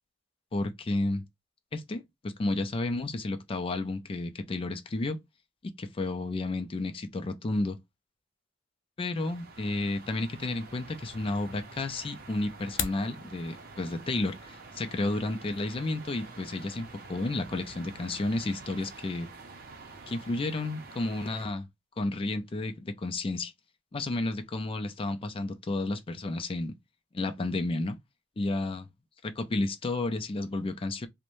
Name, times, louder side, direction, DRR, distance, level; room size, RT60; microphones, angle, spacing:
voice 1, 0.5-1.2 1.7-5.2 5.6-7.8 9.0-19.3 20.1-21.7 22.0-23.5 23.9-26.7 27.1-28.0 28.4-28.8 29.2-31.1, left 2 dB, 30° left, 0.4 m, -32 dB
sound 1, 9.1-21.4, right 3 dB, 55° right, 0.6 m, -48 dB
sound 2, 12.5-13.1, left 8 dB, 85° left, 0.5 m, -33 dB
2.5 x 2.1 x 3.0 m
head